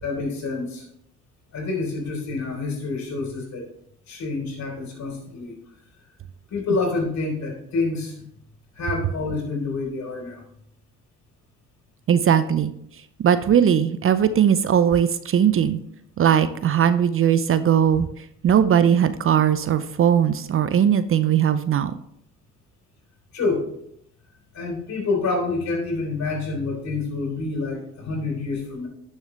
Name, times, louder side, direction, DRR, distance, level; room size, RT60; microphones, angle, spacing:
voice 1, 0.0-0.8 1.5-3.7 4.1-5.6 6.5-8.2 8.8-10.4 23.3-23.7 24.5-28.9, left 3 dB, 55° left, 1 dB, 3.8 m, -27 dB
voice 2, 12.1-12.7 13.2-15.8 16.2-18.1 18.4-22.0, right 9 dB, 40° right, 13 dB, 0.6 m, -19 dB
11.0 x 6.6 x 3.2 m, 0.71 s
hypercardioid pair, 60°, 33 cm